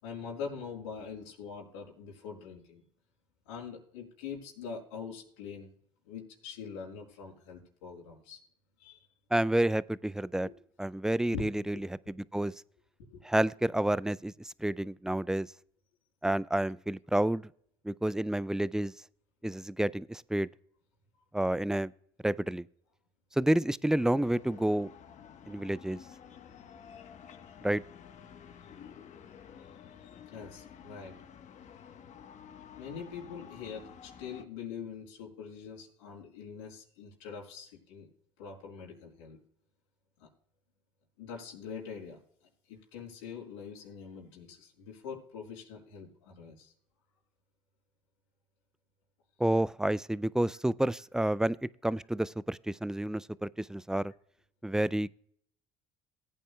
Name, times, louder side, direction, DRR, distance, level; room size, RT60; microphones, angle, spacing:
voice 1, 0.0-2.8 3.4-5.7 6.0-8.4 8.8-9.1 10.4-10.5 11.1-11.4 13.1-13.2 26.8-27.1 27.5-27.6 29.3-31.2 32.7-38.1 38.4-39.4 40.2-40.3 41.2-42.2 42.7-46.7, left 6 dB, 90° left, 4.6 m, -44 dB
voice 2, 9.3-10.5 10.8-12.5 13.2-15.5 16.2-17.5 17.8-18.9 19.4-20.5 21.3-21.9 22.2-22.7 23.4-24.9 25.5-26.0 27.6-27.8 49.4-51.6 51.8-54.1 54.6-55.1, right 1 dB, 5° right, 0.3 m, -29 dB
sound 1, 23.9-34.4, left 8 dB, 50° left, 1.2 m, -51 dB
18.5 x 9.2 x 2.3 m
supercardioid pair, 80°, 16 cm